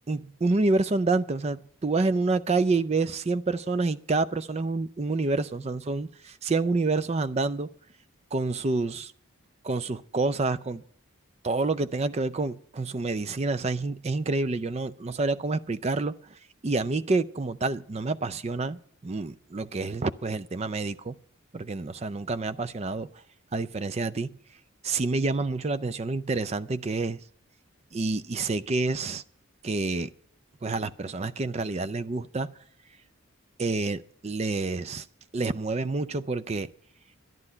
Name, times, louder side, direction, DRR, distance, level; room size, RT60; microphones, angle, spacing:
voice 1, 0.1-7.7 8.3-9.1 9.6-10.8 11.4-21.2 21.5-23.1 23.5-24.4 24.8-27.2 27.9-29.2 29.6-30.1 30.6-32.6 33.6-35.1 35.3-36.7, right 3 dB, 30° right, 0.4 m, -28 dB
12.0 x 11.0 x 5.6 m
head